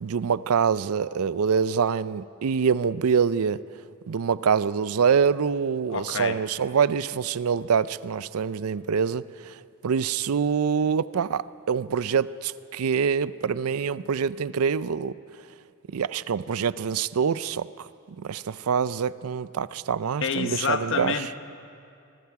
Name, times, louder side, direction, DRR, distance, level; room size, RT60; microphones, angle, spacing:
voice 1, 0.0-3.6 4.1-15.1 15.9-17.9 18.2-21.1, right 6 dB, 85° right, 17 dB, 0.5 m, -25 dB
voice 2, 5.9-6.4 20.2-21.4, left 5 dB, 60° left, 8 dB, 1.0 m, -28 dB
27.0 x 20.0 x 4.8 m, 2.6 s
head